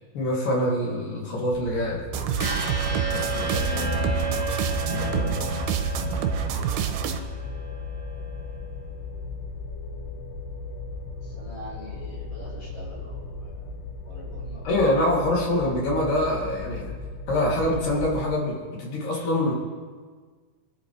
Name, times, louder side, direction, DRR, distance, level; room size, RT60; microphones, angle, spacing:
voice 1, 0.1-2.0 3.1-4.0 4.9-5.5 5.9-6.2 14.6-16.9 17.3-19.5, left 1 dB, 60° left, -4 dB, 4.4 m, -25 dB
sound 1, 1.5-18.3, left 3 dB, 80° left, 4.4 m, -37 dB
sound 2, 2.1-7.2, right 8 dB, 80° right, 2.6 m, -28 dB
sound 3, 2.4-8.5, right 1 dB, 15° left, 1.4 m, -32 dB
voice 2, 11.2-13.7 14.0-14.9, left 1 dB, 30° left, -6 dB, 5.8 m, -44 dB
25.0 x 11.0 x 3.3 m, 1.5 s
omnidirectional pair, 4.6 m